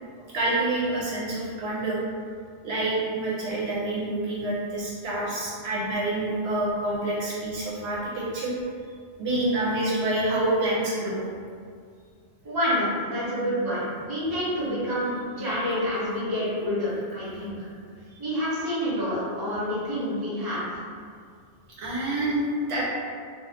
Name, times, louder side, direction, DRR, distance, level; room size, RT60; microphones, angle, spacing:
voice 1, 0.3-2.0 2.2-2.3 2.6-8.5 9.2-11.2 18.1-18.2 21.8-22.8, right 2 dB, 70° right, -6 dB, 0.8 m, -27 dB
voice 2, 12.4-17.7 18.2-20.8, equal, 25° right, -8 dB, 0.7 m, -28 dB
2.3 x 2.2 x 3.4 m, 2.1 s
omnidirectional pair, 1.2 m